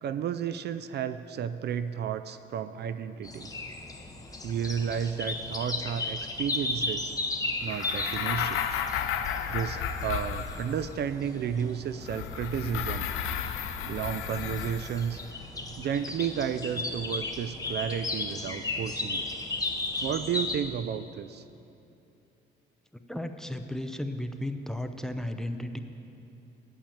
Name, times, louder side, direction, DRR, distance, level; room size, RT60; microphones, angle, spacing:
voice 1, 0.0-3.5 4.4-7.1 7.6-8.8 9.5-13.1 13.8-15.2 15.8-19.3 20.0-21.4, right 8 dB, 55° right, 12 dB, 0.4 m, -32 dB
sound 1, 3.2-20.6, left 2 dB, 20° left, 1.0 m, -36 dB
sound 2, 7.7-10.9 12.0-15.2, left 8 dB, 85° left, 0.6 m, -33 dB
voice 2, 23.1-25.8, left 1 dB, 5° left, 7 dB, 0.6 m, -34 dB
8.8 x 7.2 x 8.6 m, 2.7 s
cardioid pair, 90°, 20 cm